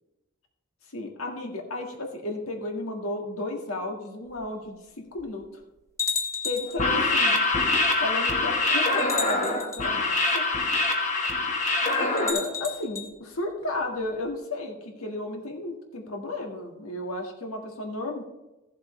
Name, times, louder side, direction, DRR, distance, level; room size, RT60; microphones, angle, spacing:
voice 1, 0.9-5.4 6.4-7.4 8.0-10.4 12.0-18.2, left 2 dB, 80° left, 2 dB, 1.7 m, -33 dB
sound 1, 4.3-4.4 5.2-5.3 6.0-6.8 8.0-8.1 9.0-9.8 12.2-13.1, left 5 dB, 15° left, 1.1 m, -32 dB
sound 2, 6.7-12.3, left 2 dB, 35° left, 1.3 m, -24 dB
15.0 x 7.5 x 3.2 m, 1.0 s
head